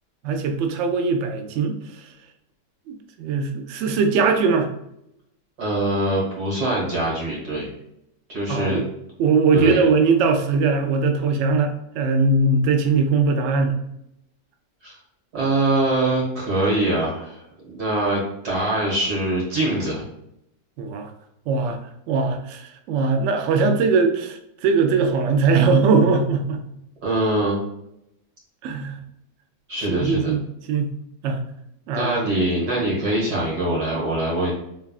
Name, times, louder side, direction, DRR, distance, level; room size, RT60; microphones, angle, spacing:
voice 1, 0.2-2.1 2.9-4.7 8.5-8.8 9.2-13.7 20.8-21.1 21.5-21.8 22.1-26.6 28.6-29.0 29.9-30.4 30.7-30.9 31.2-31.4 31.9-32.1, right 4 dB, 90° right, 5 dB, 0.6 m, -20 dB
voice 2, 5.6-7.7 8.3-8.8 9.5-9.9 14.8-14.9 15.3-20.0 27.0-27.6 29.7-30.3 31.9-34.5, right 1 dB, 65° right, -5 dB, 2.0 m, -23 dB
3.5 x 3.4 x 2.3 m, 0.79 s
omnidirectional pair, 1.9 m